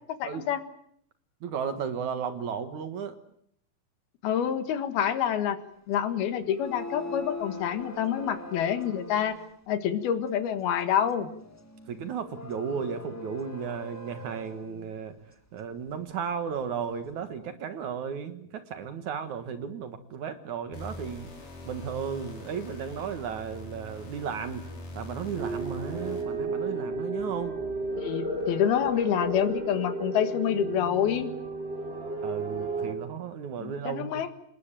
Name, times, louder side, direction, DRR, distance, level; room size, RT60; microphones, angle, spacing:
voice 1, 0.2-0.6 4.2-5.6 5.9-9.4 9.7-11.3 28.0-31.3 33.6-34.3, left 9 dB, 80° left, 10 dB, 3.5 m, -27 dB
voice 2, 1.4-3.1 11.9-15.2 15.5-21.3 21.7-24.7 24.9-27.6 32.2-34.2, right 7 dB, 60° right, 10 dB, 2.7 m, -34 dB
Blackpool High Tide Organ, 6.4-9.5 11.0-14.9, left 2 dB, 15° left, 0.5 m, -42 dB
sound 1, 20.7-26.5, left 2 dB, 60° left, 6.1 m, -43 dB
sound 2, 25.4-32.9, right 2 dB, 15° right, 3.3 m, -33 dB
27.5 x 20.0 x 9.0 m, 0.68 s
omnidirectional pair, 4.3 m